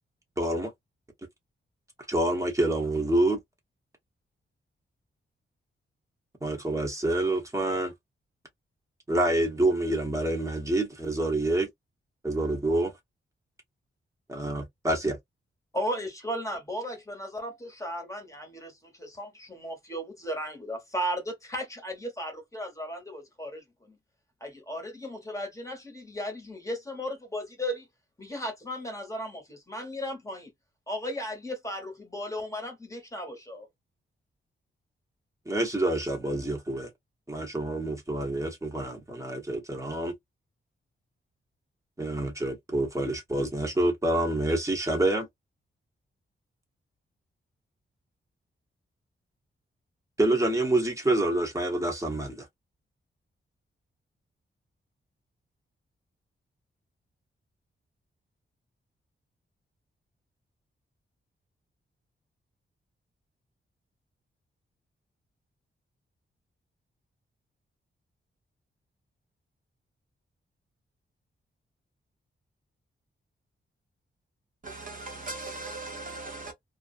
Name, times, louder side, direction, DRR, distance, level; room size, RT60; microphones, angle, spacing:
voice 1, 0.4-0.7 2.1-3.4 6.4-7.9 9.1-11.7 12.2-12.9 14.3-15.2 35.5-36.9 37.3-40.1 42.0-45.3 50.2-52.5, right 1 dB, 15° right, 1.0 m, -27 dB
voice 2, 15.7-24.0 24.4-27.9 28.2-30.5 30.9-33.7, equal, 15° left, 1.0 m, -35 dB
voice 3, 74.6-76.5, right 2 dB, 40° right, 0.7 m, -38 dB
2.4 x 2.2 x 2.4 m
wide cardioid pair, 135°, 21 cm